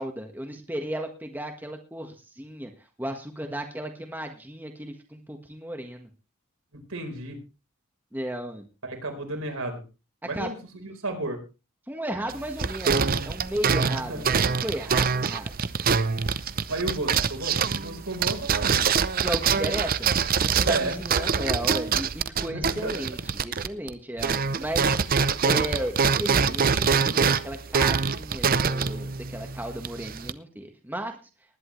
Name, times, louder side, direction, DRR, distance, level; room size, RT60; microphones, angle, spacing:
voice 1, 0.0-2.7 3.0-6.1 8.1-8.7 10.3-10.5 11.9-15.5 19.2-20.1 20.4-24.9 25.4-31.1, right 1 dB, 10° right, 4 dB, 1.4 m, -34 dB
voice 2, 6.7-7.4 8.8-9.8 10.2-11.4 14.1-14.3 16.7-18.8 20.6-21.0 22.5-23.0, right 2 dB, 70° right, 4 dB, 4.4 m, -32 dB
sound 1, 12.3-23.9 24.2-30.3, right 6 dB, 40° right, 0.6 m, -25 dB
20.0 x 11.0 x 3.2 m, 0.31 s
head